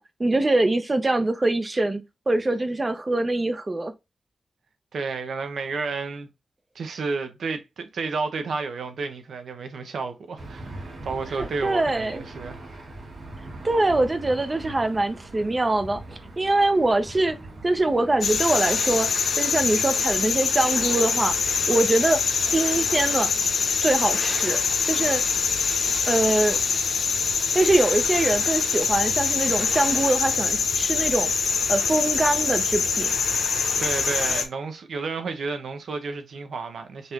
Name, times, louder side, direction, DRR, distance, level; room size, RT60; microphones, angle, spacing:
voice 1, 0.0-3.9 11.4-12.2 13.6-17.4 17.6-19.1 19.4-21.3 21.7-23.3 23.8-24.6 24.9-25.2 26.1-26.6 27.5-31.3 31.7-33.1, right 2 dB, 25° right, 0.6 m, -23 dB
voice 2, 4.9-6.3 6.7-10.8 11.0-12.6 33.8-37.1, right 4 dB, 85° right, 0.7 m, -31 dB
Aircraft / Engine, 10.4-18.9, right 2 dB, 70° right, 1.6 m, -41 dB
sound 1, 18.2-34.4, left 5 dB, 80° left, 0.7 m, -24 dB
5.3 x 3.1 x 2.4 m
wide cardioid pair, 125°, 0 cm